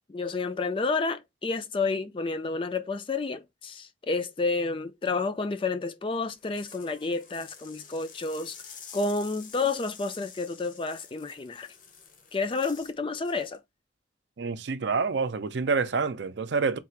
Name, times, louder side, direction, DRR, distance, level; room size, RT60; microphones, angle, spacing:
voice 1, 0.1-8.6 8.9-11.7 12.3-13.6, left 3 dB, 30° left, 0.3 m, -30 dB
sound 1, 6.3-13.0 13.2-13.6, left 6 dB, 45° left, 0.7 m, -49 dB
voice 2, 14.4-16.8, right 4 dB, 70° right, 0.5 m, -27 dB
3.7 x 2.4 x 4.4 m
head